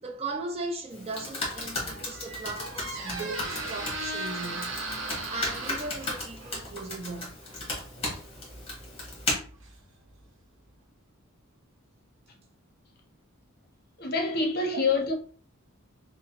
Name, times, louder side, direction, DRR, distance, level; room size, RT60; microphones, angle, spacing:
voice 1, 0.0-4.8 5.3-7.3, right 3 dB, 30° right, 0.6 m, -37 dB
Computer keyboard, 0.9-9.3, left 2 dB, 25° left, 1.3 m, -36 dB
Squeak, 1.5-10.3, right 2 dB, 60° right, 0.9 m, -38 dB
voice 2, 14.0-15.1, left 3 dB, 45° left, 0.8 m, -26 dB
5.1 x 2.1 x 2.9 m
head